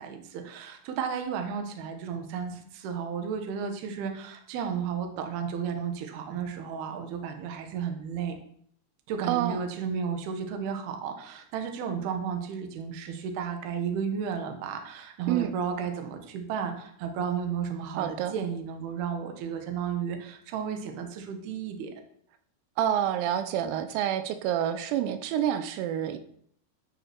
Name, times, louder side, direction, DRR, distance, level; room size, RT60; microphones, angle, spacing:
voice 1, 0.0-8.3 9.1-21.9, right 7 dB, 65° right, 5 dB, 2.8 m, -33 dB
voice 2, 9.3-9.7 15.3-15.5 18.0-18.4 22.8-26.2, right 10 dB, 90° right, 9 dB, 3.6 m, -28 dB
12.5 x 6.4 x 4.5 m, 0.65 s
omnidirectional pair, 5.9 m